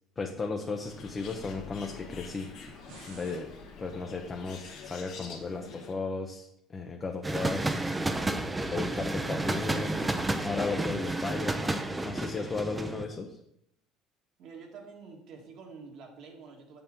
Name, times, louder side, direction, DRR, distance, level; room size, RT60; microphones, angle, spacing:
voice 1, 0.2-2.5 3.1-3.5 3.8-7.7 8.6-10.1 10.4-13.4, left 4 dB, 25° left, 2 dB, 0.7 m, -35 dB
Bird, 0.8-5.9, left 5 dB, 70° left, 1.6 m, -46 dB
sound 1, 2.5-3.4, right 4 dB, 90° right, 1.4 m, -51 dB
sound 2, 7.2-13.0, right 2 dB, 15° right, 0.6 m, -31 dB
voice 2, 14.4-16.8, right 5 dB, 65° right, 1 dB, 1.7 m, -48 dB
6.9 x 6.6 x 3.7 m, 0.74 s
cardioid pair, 110°, 0 cm